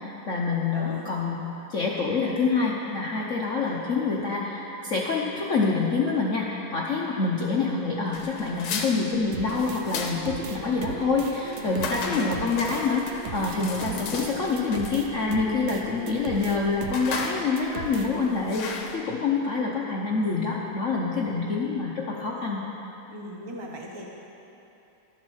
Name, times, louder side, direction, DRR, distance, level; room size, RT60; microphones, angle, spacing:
voice 1, 0.0-1.4 1.7-22.6, left 4 dB, 60° left, -3 dB, 0.8 m, -26 dB
voice 2, 0.7-1.1 11.9-12.3 12.7-12.8 23.1-24.1, right 1 dB, 25° right, -2 dB, 0.5 m, -38 dB
sound 1, 8.1-19.0, left 5 dB, 75° left, 1.8 m, -36 dB
House Loop, 9.3-18.3, right 8 dB, 75° right, 1.5 m, -38 dB
12.0 x 8.4 x 6.3 m, 3.0 s
omnidirectional pair, 2.3 m